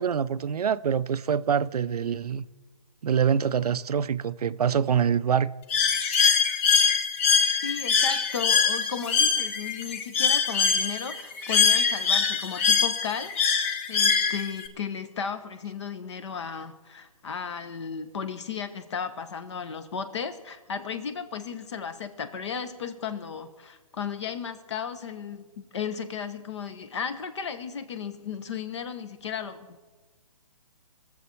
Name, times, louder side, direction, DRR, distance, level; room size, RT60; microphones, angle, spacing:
voice 1, 0.0-2.4 3.0-5.5, right 7 dB, 85° right, 0.5 m, -25 dB
Bird, 5.7-14.7, left 6 dB, 20° left, 0.6 m, -23 dB
voice 2, 7.6-13.4 13.9-29.8, left 7 dB, 50° left, 1.2 m, -35 dB
21.5 x 7.2 x 4.6 m
hypercardioid pair, 160°, 19 cm